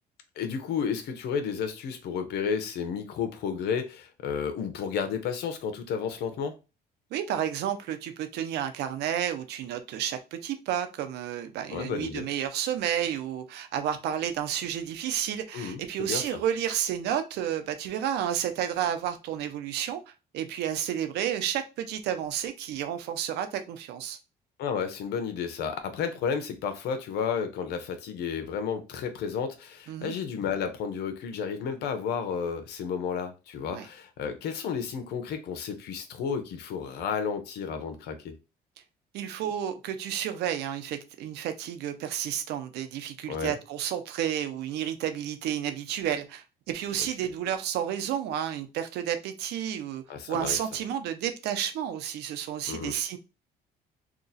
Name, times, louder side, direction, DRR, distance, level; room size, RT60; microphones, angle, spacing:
voice 1, 0.4-6.5 11.7-12.3 15.5-16.4 24.6-38.3 43.3-43.5 50.1-50.6 52.7-52.9, left 6 dB, 75° left, 0.8 m, -32 dB
voice 2, 7.1-20.0 20.3-24.2 29.9-30.1 33.7-33.9 39.1-53.2, right 10 dB, 80° right, 0.6 m, -31 dB
2.9 x 2.4 x 4.0 m
cardioid pair, 110°, 17 cm